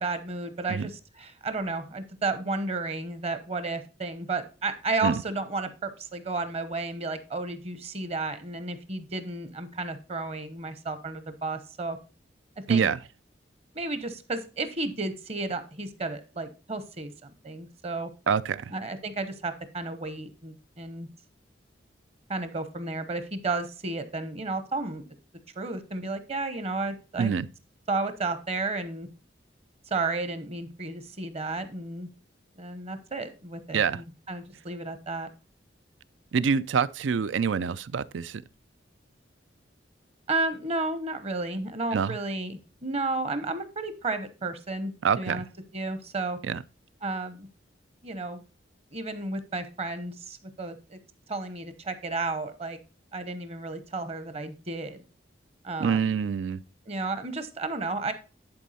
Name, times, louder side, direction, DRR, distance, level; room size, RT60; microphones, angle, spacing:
voice 1, 0.0-12.0 12.7-12.9 13.7-18.1 18.7-21.1 22.3-25.0 25.5-27.3 27.9-29.1 29.9-32.1 32.6-35.3 40.3-45.4 45.7-46.4 47.0-47.5 48.0-48.4 48.9-51.0 51.3-52.8 53.1-55.0 55.6-56.3 56.9-58.1, right 3 dB, 35° right, 0.9 m, -32 dB
voice 2, 12.7-13.0 18.3-18.7 27.2-27.5 33.7-34.0 36.3-38.4 41.9-42.2 45.0-45.4 46.4-46.6 55.8-56.6, right 6 dB, 85° right, 0.4 m, -26 dB
10.5 x 4.5 x 4.1 m
head